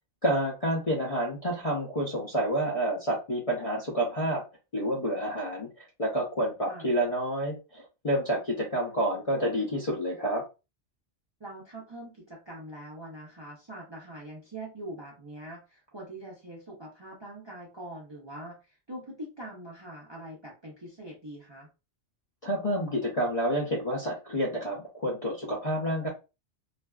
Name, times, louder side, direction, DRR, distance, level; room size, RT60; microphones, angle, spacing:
voice 1, 0.2-4.4 4.7-10.4 22.4-26.1, right 1 dB, 45° left, -2 dB, 0.4 m, -29 dB
voice 2, 11.4-21.7 25.8-25.9, right 1 dB, 35° right, -3 dB, 0.4 m, -43 dB
2.4 x 2.3 x 2.2 m, 0.29 s
omnidirectional pair, 1.2 m